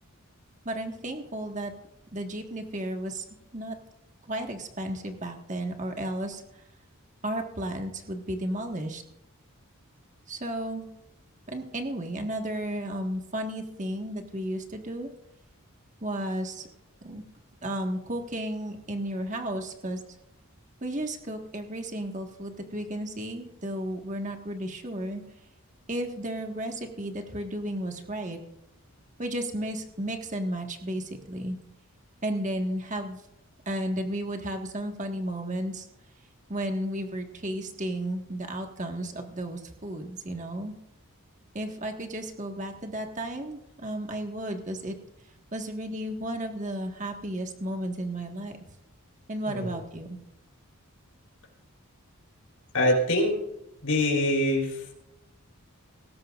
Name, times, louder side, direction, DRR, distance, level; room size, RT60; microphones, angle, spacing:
voice 1, 0.6-1.7 2.1-3.2 3.5-3.8 4.3-6.4 7.2-9.0 10.3-10.9 11.5-15.1 16.0-16.7 17.0-17.2 17.6-20.0 20.8-25.2 25.9-28.4 29.2-31.6 32.2-33.2 33.6-35.8 36.5-40.7 41.5-44.9 45.5-48.5 49.3-50.2, right 1 dB, 35° right, 3 dB, 1.6 m, -33 dB
voice 2, 52.7-53.4 53.8-54.9, left 1 dB, 85° left, 1 dB, 4.5 m, -24 dB
19.0 x 16.5 x 2.5 m, 0.86 s
head